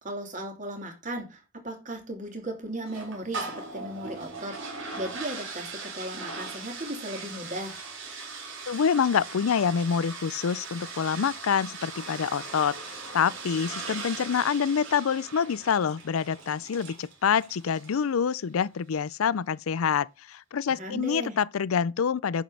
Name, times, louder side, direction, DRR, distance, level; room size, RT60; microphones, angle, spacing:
voice 1, 0.0-7.8 20.7-21.4, right 1 dB, 35° right, 2.9 m, -36 dB
sound 1, 2.9-18.1, right 4 dB, 60° right, 4.1 m, -40 dB
voice 2, 8.7-22.4, left 7 dB, 85° left, 0.4 m, -26 dB
10.0 x 5.4 x 6.4 m
head